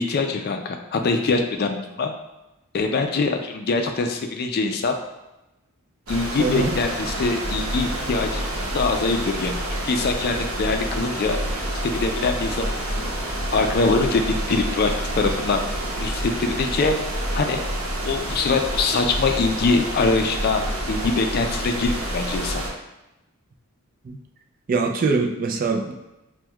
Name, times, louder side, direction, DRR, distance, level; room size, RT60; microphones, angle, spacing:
voice 1, 0.0-2.1 2.7-4.9 6.1-8.4 8.7-11.4 11.8-13.1 13.5-15.6 16.0-17.0 17.3-17.6 18.0-22.6, left 3 dB, 50° left, 5 dB, 0.4 m, -23 dB
sound 1, 6.1-22.7, right 1 dB, 75° right, 0.8 m, -28 dB
voice 2, 6.4-6.7 24.0-24.2 24.7-25.9, right 4 dB, 40° right, 2 dB, 0.4 m, -23 dB
6.0 x 2.2 x 2.3 m, 0.96 s
head